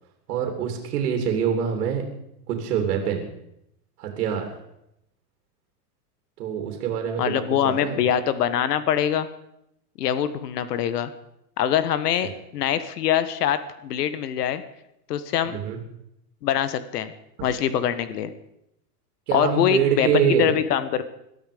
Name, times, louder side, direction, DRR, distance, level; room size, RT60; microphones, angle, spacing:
voice 1, 0.3-2.0 2.5-3.3 4.0-4.5 6.4-8.0 12.2-12.3 15.4-15.8 19.3-20.5, right 8 dB, 70° right, 3 dB, 3.3 m, -25 dB
voice 2, 7.2-9.3 10.0-11.1 11.6-14.6 15.1-15.6 16.4-17.1 17.4-18.3 19.3-21.0, left 9 dB, 70° left, 13 dB, 1.5 m, -23 dB
21.5 x 12.5 x 5.1 m, 0.81 s
supercardioid pair, 160°, 49 cm